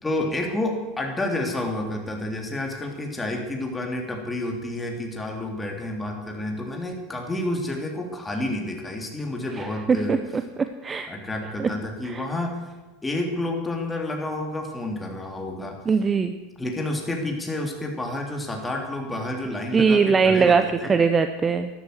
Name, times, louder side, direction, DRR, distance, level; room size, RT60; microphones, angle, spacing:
voice 1, 0.0-10.2 11.1-12.6 13.0-15.8 16.6-21.0, left 1 dB, 10° left, 1 dB, 3.4 m, -29 dB
voice 2, 10.6-11.1 11.6-11.7 12.0-12.1 15.9-16.3 19.7-20.6 20.9-21.7, right 5 dB, 20° right, 8 dB, 0.9 m, -20 dB
12.5 x 12.5 x 8.0 m, 1.2 s
supercardioid pair, 125°, 0 cm